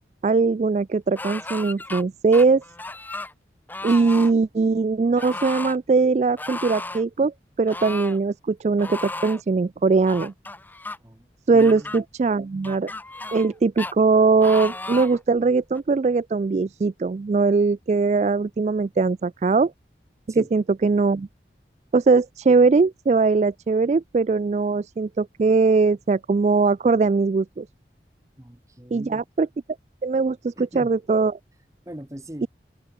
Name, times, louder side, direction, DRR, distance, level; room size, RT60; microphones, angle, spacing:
voice 1, 0.2-2.6 3.8-10.3 11.5-12.9 13.3-19.7 20.3-21.3 21.9-27.7 28.9-29.5 30.0-31.4 32.4-32.5, right 4 dB, 40° right, 0.3 m, -20 dB
sound 1, 1.2-2.0 2.3-3.3 3.7-4.3 5.2-5.8 6.4-7.0 7.7-8.2 8.8-9.4 10.1-11.0 11.6-12.0 12.6-13.5 13.8-13.9 14.4-15.2 15.7-15.8, left 2 dB, 10° left, 1.0 m, -34 dB
voice 2, 11.5-11.9 20.3-20.5 28.4-29.2 30.6-30.9 31.9-32.5, equal, 15° right, 1.4 m, -40 dB
head